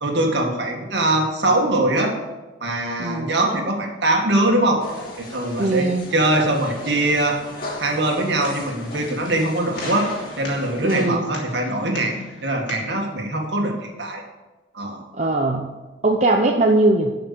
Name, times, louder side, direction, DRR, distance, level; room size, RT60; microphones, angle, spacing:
voice 1, 0.0-2.1 2.6-4.8 5.2-7.4 7.8-10.1 10.4-12.2 12.4-14.2 14.7-15.0, right 1 dB, 65° right, 1 dB, 2.1 m, -22 dB
voice 2, 3.0-3.4 5.6-6.0 10.8-11.2 15.1-15.7 16.0-17.1, right 2 dB, 35° right, 1 dB, 0.7 m, -20 dB
sound 1, 4.8-11.1, left 1 dB, 45° left, 2.6 m, -36 dB
sound 2, 8.0-13.0, left 2 dB, 70° left, 3.0 m, -40 dB
12.0 x 5.9 x 6.8 m, 1.2 s
head